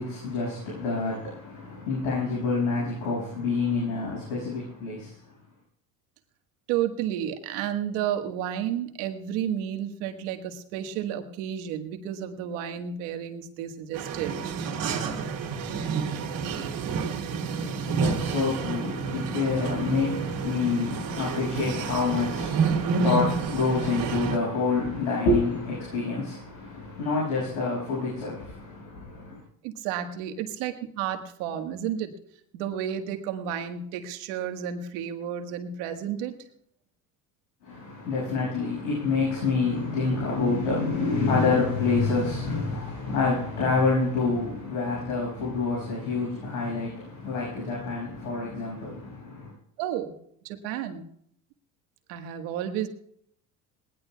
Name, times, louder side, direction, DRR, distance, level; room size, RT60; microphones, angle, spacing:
voice 1, 0.0-5.1 17.2-29.4 37.6-49.5, left 4 dB, 85° left, 6.5 m, -27 dB
voice 2, 6.7-14.4 29.6-32.1 32.5-36.3 49.8-50.1 50.4-51.1 52.1-52.9, right 9 dB, 75° right, 1.6 m, -31 dB
sound 1, 13.9-24.4, right 5 dB, 50° right, 2.4 m, -29 dB
21.0 x 19.0 x 2.3 m
supercardioid pair, 85°, 42 cm